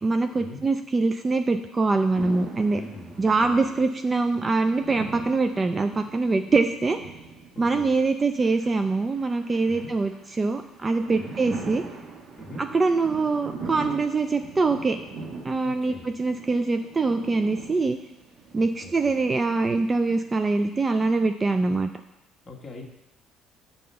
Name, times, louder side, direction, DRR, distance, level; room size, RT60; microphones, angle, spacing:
voice 1, 0.0-2.8 3.2-7.0 7.6-11.8 12.6-15.0 15.4-18.0 18.5-21.9, right 3 dB, 20° right, 8 dB, 0.3 m, -24 dB
sound 1, 2.1-21.0, right 4 dB, 50° right, 1.3 m, -42 dB
voice 2, 2.7-3.6 7.5-7.9 9.7-9.9 11.1-11.3 12.4-12.6 15.6-16.1 18.5-19.1 22.4-22.9, left 2 dB, 25° left, -2 dB, 1.5 m, -43 dB
7.5 x 4.3 x 6.7 m, 0.91 s
cardioid pair, 125°, 0 cm